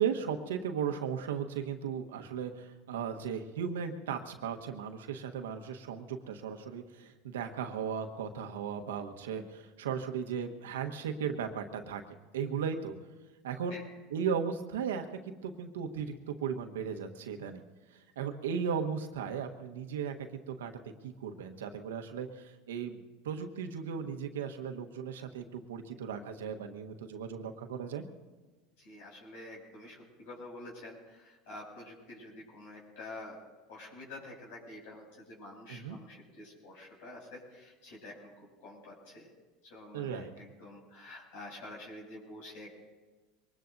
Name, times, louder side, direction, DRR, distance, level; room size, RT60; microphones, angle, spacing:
voice 1, 0.0-12.0 12.3-12.9 13.4-13.8 14.1-15.1 15.4-17.6 18.2-20.1 20.5-20.7 21.0-28.0 35.7-36.0 39.9-40.3, right 7 dB, 90° right, 5 dB, 1.2 m, -36 dB
voice 2, 28.8-33.4 33.7-38.3 38.6-39.3 39.6-42.7, left 2 dB, 70° left, -3 dB, 6.7 m, -48 dB
23.5 x 20.0 x 2.7 m, 1.3 s
hypercardioid pair, 100°, 0 cm